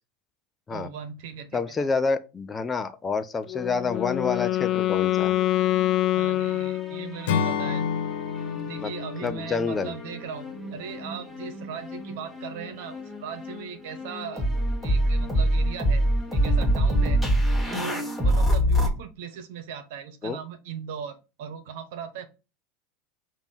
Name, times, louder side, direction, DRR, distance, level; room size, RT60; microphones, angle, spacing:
voice 1, 0.7-1.5 1.8-1.9 6.2-7.9 8.6-14.5 14.8-16.0 16.3-17.2 17.7-22.2, right 7 dB, 65° right, 1.3 m, -38 dB
voice 2, 1.5-5.3 8.8-8.9 9.2-9.9 20.2-20.4, left 4 dB, 20° left, 0.7 m, -28 dB
Wind instrument woodwind instrument, 3.5-7.4, left 14 dB, 45° left, 0.4 m, -25 dB
sound 1, 4.4-6.0 6.3-7.7 8.4-18.9, equal, ahead, 1.9 m, -26 dB
Acoustic guitar / Strum, 7.2-11.4, left 7 dB, 65° left, 1.4 m, -31 dB
6.9 x 3.0 x 5.4 m
hypercardioid pair, 85°, 0 cm